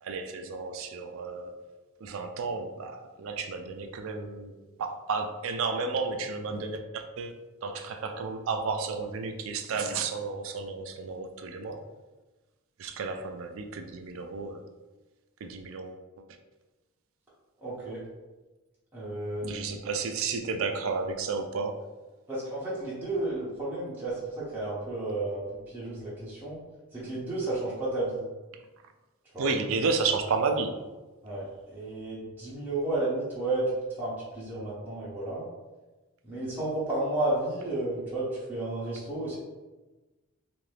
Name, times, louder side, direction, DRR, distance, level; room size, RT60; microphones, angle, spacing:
voice 1, 0.0-1.6 2.0-4.5 4.8-7.3 7.6-11.8 12.8-14.6 15.4-16.2 19.4-21.9 29.4-30.8, right 4 dB, 65° right, 5 dB, 0.4 m, -32 dB
voice 2, 17.6-18.0 18.9-19.7 22.3-26.6 26.9-28.2 29.3-29.5 31.2-33.7 34.0-35.5 36.2-39.4, right 2 dB, 10° right, -9 dB, 0.8 m, -32 dB
2.7 x 2.5 x 3.2 m, 1.2 s
head